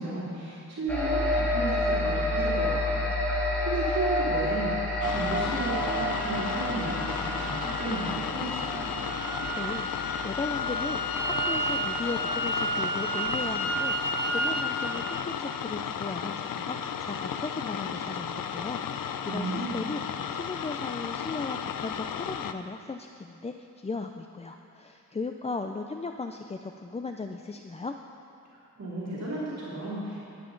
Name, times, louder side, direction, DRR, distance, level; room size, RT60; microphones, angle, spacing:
voice 1, 0.0-3.3 3.6-4.7 5.1-8.9 19.3-19.8 28.8-30.2, right 2 dB, 50° right, -9 dB, 3.1 m, -34 dB
sound 1, 0.9-12.7, left 1 dB, 5° left, 2.3 m, -30 dB
sound 2, 5.0-22.5, left 8 dB, 90° left, 0.6 m, -34 dB
sound 3, 5.0-14.7, right 1 dB, 10° right, 2.1 m, -33 dB
voice 2, 9.5-20.0 20.3-28.0, left 3 dB, 20° left, 5 dB, 0.4 m, -37 dB
20.0 x 9.1 x 3.9 m, 2.7 s
wide cardioid pair, 120°, 32 cm